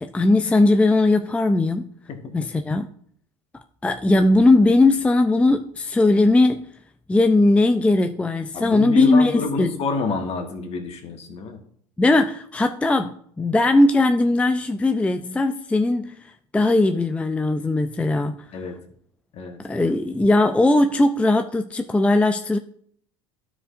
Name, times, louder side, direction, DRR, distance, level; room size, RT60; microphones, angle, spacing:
voice 1, 0.0-1.9 2.3-2.9 3.8-6.6 7.1-9.8 12.0-18.5 19.6-22.6, left 2 dB, 10° left, 0.4 m, -19 dB
voice 2, 8.5-11.6 18.5-18.7 19.3-19.6, left 4 dB, 45° left, 1.6 m, -28 dB
13.0 x 5.0 x 2.5 m
hypercardioid pair, 75°, 15 cm